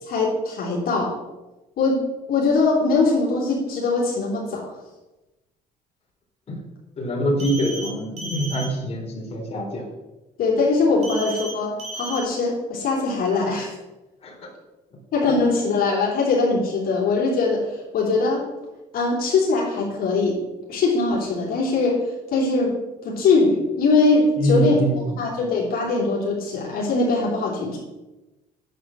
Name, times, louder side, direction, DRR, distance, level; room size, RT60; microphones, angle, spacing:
voice 1, 0.1-1.1 1.8-2.0 2.3-4.7 10.4-13.7 15.1-18.4 18.9-20.4 20.7-22.8 23.0-24.7 25.2-27.8, left 3 dB, 60° left, -4 dB, 3.3 m, -21 dB
voice 2, 7.0-9.8 14.2-14.5 24.4-25.0, right 1 dB, 35° left, -2 dB, 3.8 m, -24 dB
sound 1, 7.4-7.9 8.2-8.7 11.0-11.5 11.8-12.2, right 2 dB, 40° right, 4.3 m, -33 dB
9.3 x 8.1 x 6.3 m, 1.1 s
cardioid pair, 110°, 17 cm